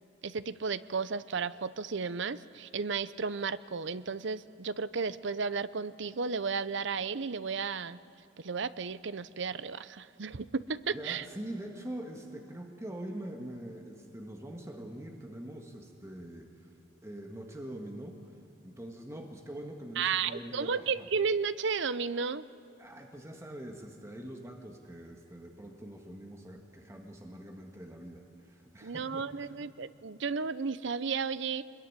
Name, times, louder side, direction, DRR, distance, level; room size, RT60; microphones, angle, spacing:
voice 1, 0.2-8.0 8.4-11.3 20.0-22.5 28.8-31.6, right 5 dB, 65° right, 15 dB, 0.7 m, -33 dB
voice 2, 10.9-16.7 17.0-21.1 22.8-29.7, right 1 dB, 15° right, 2 dB, 1.7 m, -44 dB
25.0 x 21.5 x 9.8 m, 2.7 s
head